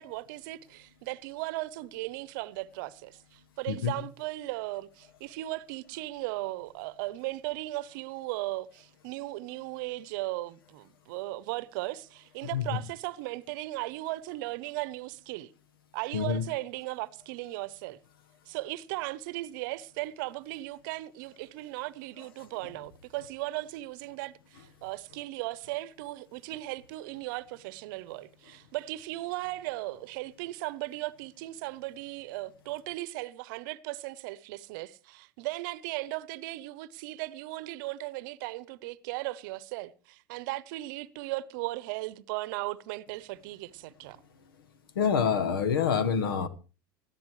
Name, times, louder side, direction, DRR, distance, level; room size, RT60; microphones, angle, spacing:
voice 1, 0.0-15.5 15.9-18.0 18.5-44.2, right 18 dB, 65° right, 0.8 m, -37 dB
voice 2, 16.1-16.4 44.9-46.5, left 7 dB, 85° left, 1.3 m, -26 dB
19.5 x 14.0 x 3.2 m
hypercardioid pair, 95°, 12 cm